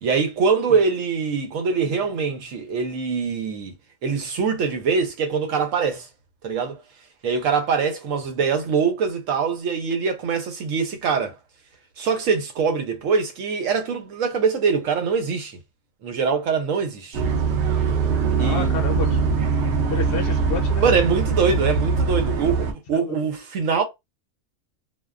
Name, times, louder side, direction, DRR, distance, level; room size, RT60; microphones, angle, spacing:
voice 1, 0.0-3.8 4.0-6.1 6.4-6.8 7.2-11.4 12.0-15.6 16.0-17.2 18.4-18.7 20.8-23.8, right 5 dB, 85° right, 1.1 m, -23 dB
sound 1, 17.1-22.7, right 5 dB, 65° right, 0.8 m, -22 dB
voice 2, 18.4-19.4 19.9-21.0 22.9-23.2, left 4 dB, 60° left, 0.7 m, -30 dB
2.5 x 2.1 x 2.3 m
omnidirectional pair, 1.3 m